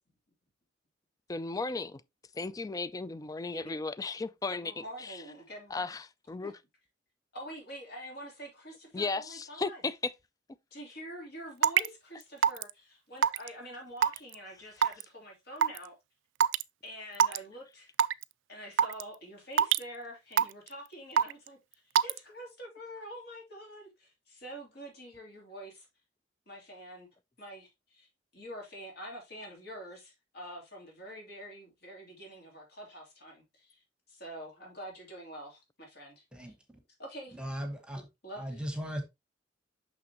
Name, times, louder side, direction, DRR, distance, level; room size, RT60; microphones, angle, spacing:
voice 1, 1.3-2.0 2.3-5.2 5.7-6.5 8.9-10.1, left 3 dB, 20° left, 0.4 m, -35 dB
voice 2, 4.5-6.0 6.4-6.5 7.3-9.8 10.7-15.9 16.8-17.9 18.5-25.9 26.5-27.1 27.4-28.1 28.3-36.5 37.0-37.4 38.2-38.4, equal, 60° left, 3.0 m, -46 dB
Raindrop / Water tap faucet / Drip, 11.6-11.9 12.4-12.7 13.2-13.5 14.0-14.3 14.8-15.0 15.6-15.8 16.4-16.6 17.1-17.4 18.0-18.2 18.8-19.0 19.6-19.8 20.4-20.7 21.2-21.5 22.0-22.2, right 8 dB, 85° right, 0.3 m, -23 dB
voice 3, 37.3-38.0 38.3-39.0, equal, 5° right, 1.2 m, -37 dB
6.0 x 6.0 x 2.9 m
head